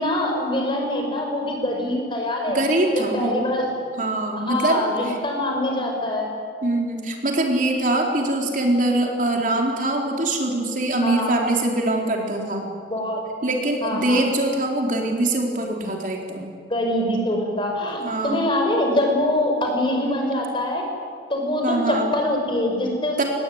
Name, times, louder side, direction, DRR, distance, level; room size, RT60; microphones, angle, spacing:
voice 1, 0.0-2.6 3.1-3.6 4.5-6.3 11.0-11.4 12.9-13.2 13.8-14.2 16.7-20.8 21.3-23.2, left 1 dB, 30° left, 2 dB, 5.8 m, -24 dB
voice 2, 2.5-3.4 4.0-5.2 6.6-12.7 13.4-16.5 18.0-18.4 21.6-22.1 23.2-23.3, right 1 dB, 50° right, 1 dB, 4.0 m, -23 dB
25.5 x 20.0 x 9.7 m, 2.2 s
head